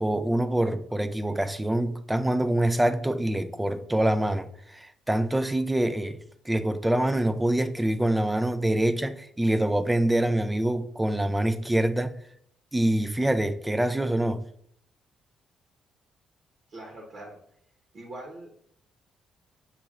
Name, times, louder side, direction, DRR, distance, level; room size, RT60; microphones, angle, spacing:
voice 1, 0.0-6.2 6.5-12.2 12.7-14.4, right 1 dB, 10° right, 0.4 m, -25 dB
voice 2, 16.7-17.4 17.9-18.5, right 1 dB, 55° right, 1.1 m, -42 dB
6.9 x 3.0 x 2.5 m
cardioid pair, 90°, 0 cm